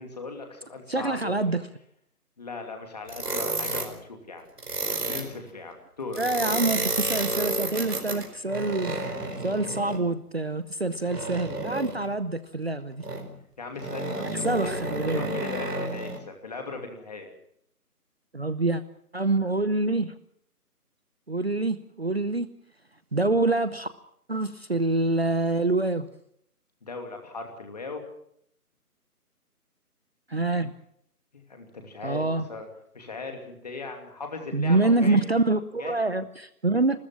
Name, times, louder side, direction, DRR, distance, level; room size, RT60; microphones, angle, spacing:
voice 1, 0.0-1.3 2.4-4.4 5.0-6.2 13.6-14.7 15.1-17.3 26.8-28.0 31.3-32.2 32.5-32.7 32.9-35.2 35.8-36.0, left 3 dB, 25° left, 4 dB, 2.7 m, -38 dB
voice 2, 0.9-1.7 6.2-9.0 9.4-13.0 14.4-15.3 18.3-18.8 19.1-20.1 21.3-22.5 23.1-23.9 24.3-26.1 30.3-30.7 32.0-32.5 34.5-37.0, right 2 dB, 40° right, 14 dB, 0.8 m, -26 dB
sound 1, 3.1-3.9 4.6-5.3 6.1-10.0 11.1-12.1 13.0-13.3 13.8-16.2, right 2 dB, 75° right, 4.9 m, -31 dB
28.0 x 14.0 x 7.3 m, 0.71 s
figure-of-eight pair, 175°, 47 cm